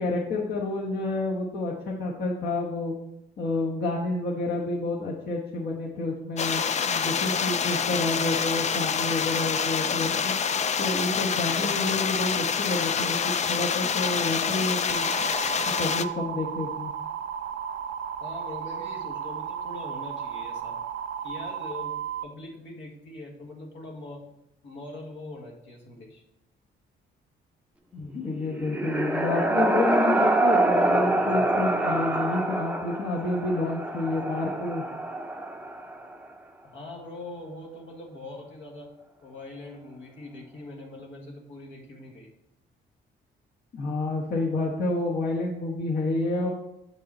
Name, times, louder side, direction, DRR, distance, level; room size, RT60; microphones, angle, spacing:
voice 1, 0.0-2.9 3.4-10.3 10.8-15.1 15.8-16.9 27.9-34.8 43.7-46.5, left 2 dB, 55° left, -3 dB, 1.2 m, -29 dB
sound 1, 6.4-16.1, left 6 dB, 35° left, 0.4 m, -27 dB
sound 2, 14.9-22.2, right 8 dB, 70° right, 0.6 m, -34 dB
voice 2, 18.2-20.8 21.2-21.9 22.2-24.2 24.6-26.2 36.7-38.9 39.2-42.3, left 2 dB, 75° left, 0 dB, 1.7 m, -42 dB
sound 3, 28.3-36.1, right 2 dB, 5° right, 0.6 m, -26 dB
7.6 x 5.4 x 4.2 m, 0.87 s
cardioid pair, 90°, 20 cm